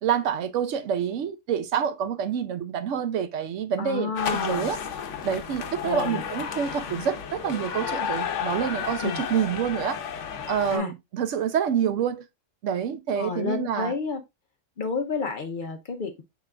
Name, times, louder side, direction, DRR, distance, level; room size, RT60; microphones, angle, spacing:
voice 1, 0.0-4.8 5.2-10.0 10.5-12.2 12.6-13.9, right 8 dB, 80° right, 1.0 m, -27 dB
voice 2, 3.8-4.7 5.8-6.2 9.0-9.2 10.7-10.9 13.1-14.2 14.8-16.2, left 5 dB, 50° left, 0.7 m, -30 dB
sound 1, 4.2-10.8, left 8 dB, 75° left, 1.0 m, -32 dB
5.9 x 3.4 x 2.3 m
omnidirectional pair, 1.3 m